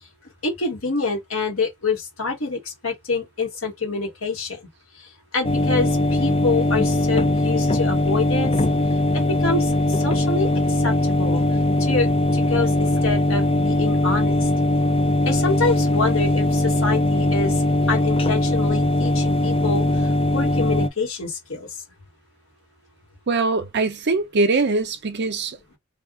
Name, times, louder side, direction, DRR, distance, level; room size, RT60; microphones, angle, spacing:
voice 1, 0.4-4.6 5.3-8.5 9.1-10.5 10.8-11.4 11.8-14.3 15.2-17.5 17.9-19.8 20.3-21.7, left 3 dB, 70° left, 1.5 m, -26 dB
sound 1, 5.4-20.9, left 1 dB, 25° left, 0.4 m, -20 dB
voice 2, 23.3-25.8, right 3 dB, 55° right, 0.7 m, -22 dB
3.4 x 2.4 x 3.7 m
head